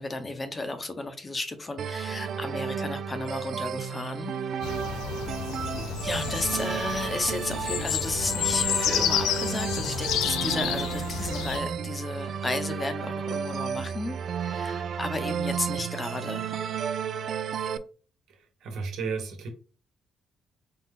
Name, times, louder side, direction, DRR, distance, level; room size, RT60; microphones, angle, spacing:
voice 1, 0.0-4.3 6.0-16.6, left 2 dB, 25° left, 0.8 m, -33 dB
sound 1, 1.8-17.8, right 7 dB, 65° right, 0.4 m, -32 dB
sound 2, 4.6-11.6, left 11 dB, 90° left, 0.3 m, -30 dB
voice 2, 18.6-19.5, right 5 dB, 80° right, 1.2 m, -32 dB
4.3 x 2.3 x 3.7 m
cardioid pair, 90°, 0 cm